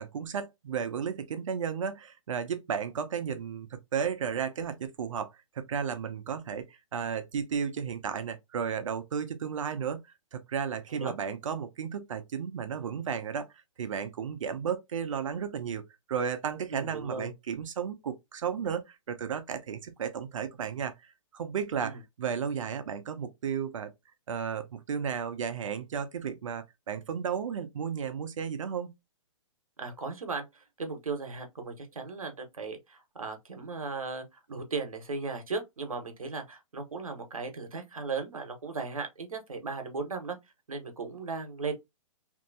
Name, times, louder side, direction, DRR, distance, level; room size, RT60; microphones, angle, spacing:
voice 1, 0.0-5.3 5.6-10.0 10.3-13.5 13.8-15.8 16.1-23.9 24.3-28.9, right 7 dB, 65° right, 0.7 m, -33 dB
voice 2, 16.7-17.3 21.8-22.0 29.8-40.4 40.7-41.8, right 4 dB, 90° right, 1.1 m, -37 dB
3.0 x 2.7 x 2.6 m
hypercardioid pair, 130°, 17 cm